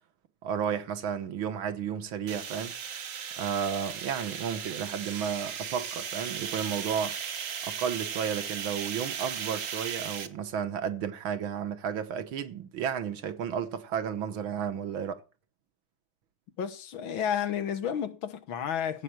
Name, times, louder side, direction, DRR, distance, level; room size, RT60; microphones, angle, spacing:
voice 1, 0.4-2.7 3.4-7.2 7.6-15.2, right 8 dB, 70° right, 2.0 m, -32 dB
sound 1, 2.3-10.3, right 7 dB, 45° right, 1.2 m, -36 dB
voice 2, 16.6-19.0, left 8 dB, 70° left, 1.9 m, -31 dB
16.0 x 5.6 x 8.9 m
omnidirectional pair, 2.3 m